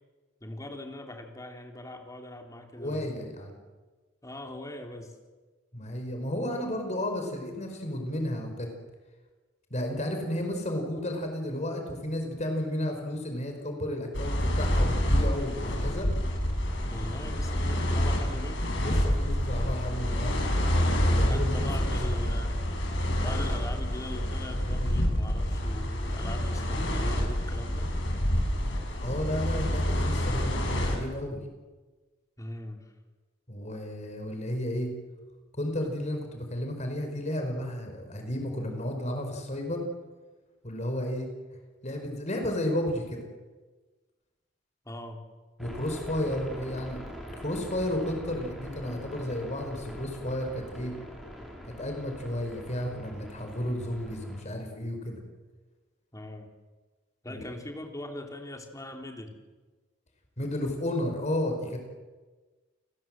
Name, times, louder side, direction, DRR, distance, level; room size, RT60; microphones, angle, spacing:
voice 1, 0.4-3.0 4.2-5.1 16.9-18.8 21.2-22.6 23.2-27.9 32.4-32.9 44.9-45.2 56.1-56.5 57.2-59.3, left 1 dB, 20° left, 3 dB, 3.6 m, -41 dB
voice 2, 2.8-3.6 5.7-8.7 9.7-16.1 18.8-20.3 21.0-21.7 29.0-31.4 33.5-34.9 35.6-39.8 40.6-41.3 41.8-43.2 45.6-47.0 47.4-50.9 51.8-55.2 57.3-57.4 60.4-61.8, left 1 dB, 40° left, 4 dB, 5.0 m, -32 dB
sound 1, 14.1-31.0, equal, 70° left, 6.9 m, -27 dB
sound 2, 45.6-54.4, equal, ahead, 7.0 m, -43 dB
30.0 x 20.5 x 7.8 m, 1.3 s
head